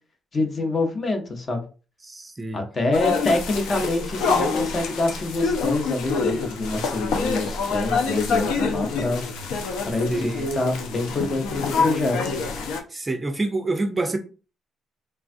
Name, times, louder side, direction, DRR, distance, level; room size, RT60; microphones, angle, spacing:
voice 1, 0.3-1.6 2.5-9.2 9.9-12.2, left 2 dB, 40° left, 0.7 m, -26 dB
voice 2, 2.0-2.6 10.1-10.5 12.9-14.2, right 2 dB, 20° right, 0.5 m, -27 dB
sound 1, 2.9-12.8, left 4 dB, 90° left, 0.5 m, -26 dB
3.3 x 2.3 x 2.5 m
cardioid pair, 90°, 0 cm